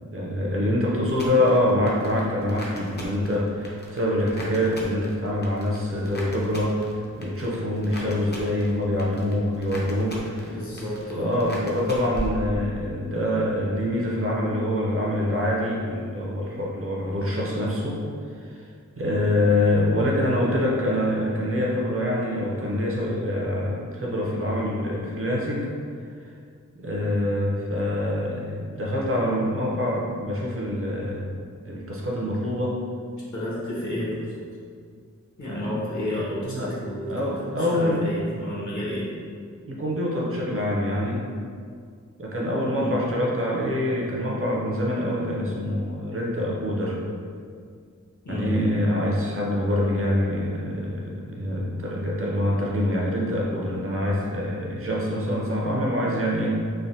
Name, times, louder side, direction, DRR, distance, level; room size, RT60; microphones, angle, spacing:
voice 1, 0.1-10.6 11.2-18.0 18.4-18.7 19.0-25.7 26.7-31.3 31.7-32.8 36.4-36.7 37.1-38.0 39.7-41.3 42.2-47.0 48.3-56.6, left 1 dB, 45° right, -4 dB, 0.6 m, -25 dB
sound 1, 1.1-13.0 13.3-13.9, equal, 35° left, 0.5 m, -39 dB
voice 2, 10.5-11.3 19.0-19.2 33.3-34.4 35.4-37.1 37.4-39.1 42.7-43.0 48.2-48.6, left 1 dB, 75° left, -7 dB, 1.0 m, -31 dB
3.3 x 2.1 x 2.6 m, 2.2 s
wide cardioid pair, 105°, 30 cm